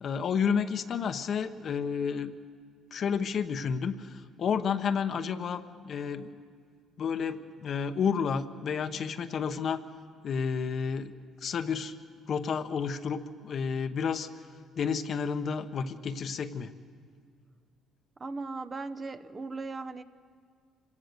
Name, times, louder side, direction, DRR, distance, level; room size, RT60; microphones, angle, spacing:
voice 1, 0.0-2.3 2.9-6.3 7.0-9.8 10.2-11.1 11.4-11.9 12.3-14.3 14.8-16.7, left 6 dB, 55° left, 9 dB, 1.0 m, -31 dB
voice 2, 18.2-20.0, right 3 dB, 35° right, 9 dB, 0.8 m, -37 dB
26.0 x 17.0 x 6.7 m, 2.1 s
supercardioid pair, 80°, 0 cm